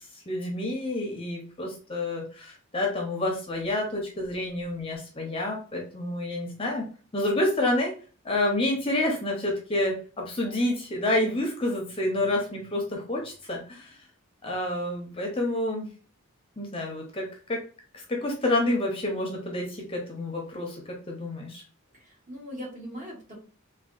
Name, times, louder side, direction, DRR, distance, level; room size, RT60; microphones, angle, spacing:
voice 1, 0.0-6.9 7.1-7.9 8.2-14.0 14.4-15.9 16.6-17.6 18.1-20.8 21.1-21.6, left 1 dB, 25° left, 0 dB, 0.6 m, -28 dB
voice 2, 21.9-23.4, equal, 35° right, -2 dB, 1.1 m, -40 dB
3.4 x 2.2 x 2.3 m, 0.40 s
head